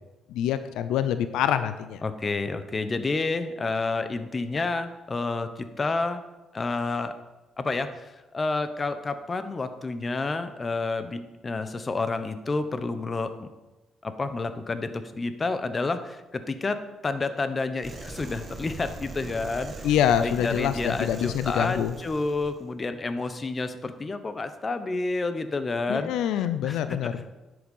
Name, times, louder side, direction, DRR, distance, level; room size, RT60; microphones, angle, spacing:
voice 1, 0.3-2.0 19.8-21.9 25.9-27.2, left 10 dB, 90° left, 11 dB, 0.6 m, -25 dB
voice 2, 2.0-6.2 6.5-7.1 7.6-13.5 14.0-16.8 17.0-19.8 20.2-26.1 26.4-27.1, left 3 dB, 30° left, 10 dB, 1.0 m, -29 dB
sound 1, 17.8-22.7, right 3 dB, 35° right, 2.2 m, -40 dB
10.5 x 7.9 x 5.5 m, 1.1 s
cardioid pair, 90°, 0 cm